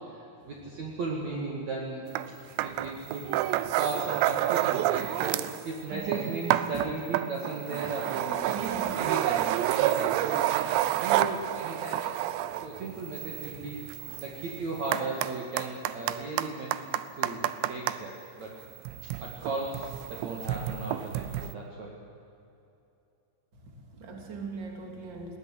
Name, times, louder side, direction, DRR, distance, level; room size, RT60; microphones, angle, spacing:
voice 1, 0.5-2.0 2.6-3.3 3.7-12.1 12.6-13.8 14.2-16.8 17.2-18.6 19.2-21.9, right 3 dB, 50° right, -2 dB, 2.8 m, -36 dB
sound 1, 2.2-2.3 2.6-5.6 5.9-18.0 18.8-21.5, right 13 dB, 85° right, 2.9 m, -30 dB
voice 2, 8.5-9.0 10.1-10.2 14.0-14.2 23.6-25.4, right 4 dB, 30° right, 2 dB, 2.9 m, -40 dB
20.0 x 16.5 x 10.0 m, 2.7 s
omnidirectional pair, 4.9 m